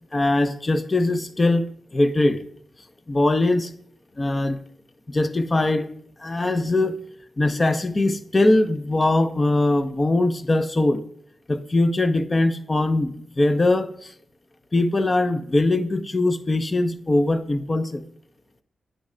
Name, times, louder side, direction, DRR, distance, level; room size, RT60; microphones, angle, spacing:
voice 1, 0.1-1.6 1.9-2.4 3.1-3.7 4.2-4.6 5.1-5.9 6.2-7.0 7.4-11.0 11.5-14.1 14.7-18.0, left 2 dB, 25° left, 11 dB, 0.5 m, -21 dB
8.8 x 3.2 x 4.9 m, 0.65 s
wide cardioid pair, 120°, 0 cm